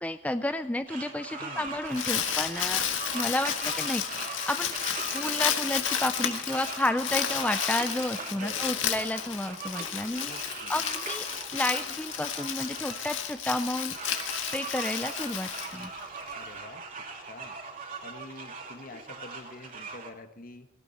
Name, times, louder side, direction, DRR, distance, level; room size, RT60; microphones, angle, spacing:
voice 1, 0.0-2.8 3.1-4.8 5.1-10.3 10.7-11.2 11.5-15.9, left 1 dB, 5° left, 9 dB, 0.5 m, -31 dB
sound 1, 0.9-20.1, right 4 dB, 45° right, 2.9 m, -40 dB
voice 2, 1.4-1.8 8.3-8.9 10.2-10.7 16.3-16.8 17.3-17.6 18.0-20.7, left 2 dB, 45° left, 8 dB, 1.5 m, -46 dB
Crumpling crinkling, 1.7-16.3, left 9 dB, 70° left, 1.8 m, -32 dB
18.0 x 17.0 x 4.3 m, 0.87 s
head